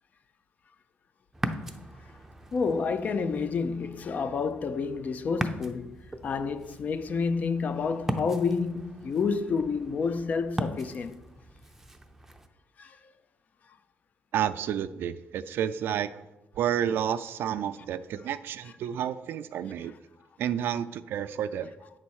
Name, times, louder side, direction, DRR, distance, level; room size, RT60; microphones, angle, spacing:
Ocean, 1.3-12.5, right 1 dB, 10° right, 0.6 m, -39 dB
voice 1, 2.5-6.0 6.2-11.2 12.8-13.0, left 5 dB, 45° left, 0.5 m, -29 dB
voice 2, 14.3-16.1 16.6-19.9 20.4-21.7, right 9 dB, 70° right, 0.3 m, -30 dB
8.6 x 4.1 x 6.3 m
cardioid pair, 120°, 4 cm